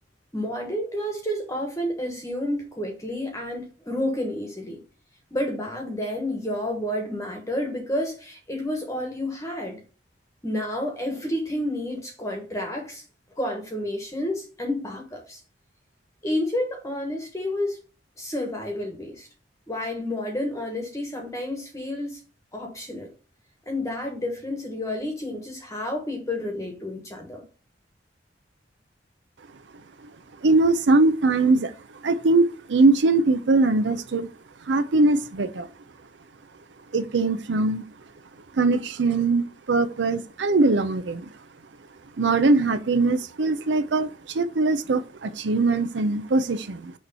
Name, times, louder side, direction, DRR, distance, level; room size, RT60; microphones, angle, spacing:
voice 1, 0.3-4.8 5.3-9.8 10.4-13.0 13.4-15.4 16.2-17.8 18.2-19.3 19.7-22.2 22.5-23.1 23.7-27.4, left 1 dB, 15° left, 1.2 m, -30 dB
voice 2, 30.4-31.7 32.0-34.3 34.7-35.7 36.9-37.9 38.5-41.3 42.2-46.9, right 3 dB, 80° right, 0.6 m, -21 dB
6.3 x 3.1 x 5.4 m
head